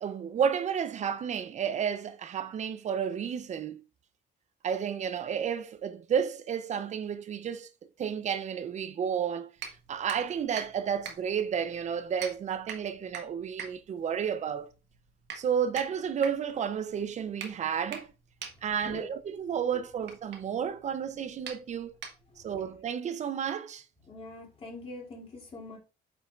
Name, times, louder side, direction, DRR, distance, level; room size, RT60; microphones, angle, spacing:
voice 1, 0.0-3.8 4.6-7.7 8.0-9.5 9.9-14.7 15.3-18.1 18.6-21.9 22.4-23.8, right 7 dB, 40° right, 0.7 m, -31 dB
sound 1, 9.6-22.6, right 7 dB, 75° right, 1.4 m, -45 dB
voice 2, 24.1-25.8, left 2 dB, 30° left, 2.9 m, -43 dB
8.5 x 5.5 x 2.5 m
cardioid pair, 155°, 18 cm